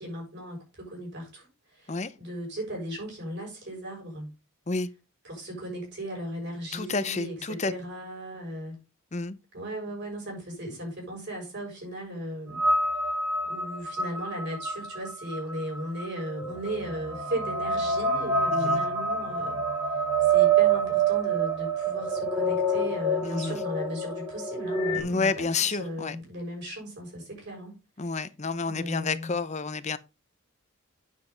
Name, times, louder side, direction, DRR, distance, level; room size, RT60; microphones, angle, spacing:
voice 1, 0.0-4.3 5.2-8.8 9.5-12.6 13.5-19.6 19.9-27.8 28.6-29.3, right 1 dB, 55° right, 6.7 m, -37 dB
voice 2, 6.7-7.7 9.1-9.4 18.5-18.8 23.2-23.6 24.9-26.2 28.0-30.0, left 4 dB, 30° left, 0.6 m, -30 dB
sound 1, 12.5-25.0, right 3 dB, 20° right, 2.6 m, -27 dB
8.9 x 7.5 x 3.9 m
head